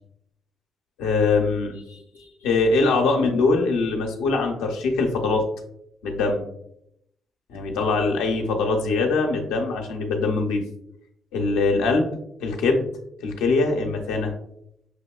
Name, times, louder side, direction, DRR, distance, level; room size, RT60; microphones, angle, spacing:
voice 1, 1.0-5.5 6.0-6.5 7.5-10.6 11.3-12.1 12.4-12.9 13.2-14.3, left 3 dB, 85° left, 2 dB, 0.7 m, -22 dB
6.2 x 2.8 x 2.3 m, 0.76 s
hypercardioid pair, 50°, 0 cm